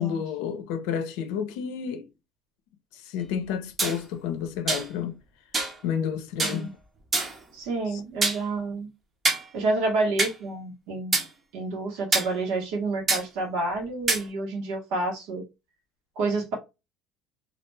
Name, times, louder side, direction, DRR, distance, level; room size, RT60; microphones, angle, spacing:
voice 1, 0.0-2.1 3.1-5.2 5.8-6.7 7.9-8.0, left 8 dB, 85° left, 0.5 m, -30 dB
sound 1, 3.8-4.0 4.7-4.9 5.5-5.8 6.4-6.6 7.1-7.4 8.2-8.4 9.3-9.4 10.2-10.3 11.1-11.3 12.1-12.3 13.1-13.2 14.1-14.2, right 3 dB, 25° right, 0.6 m, -24 dB
voice 2, 7.5-8.9 9.5-11.1 11.5-15.4 16.2-16.5, right 3 dB, 75° right, 1.0 m, -29 dB
2.3 x 2.2 x 3.1 m
cardioid pair, 145°, 0 cm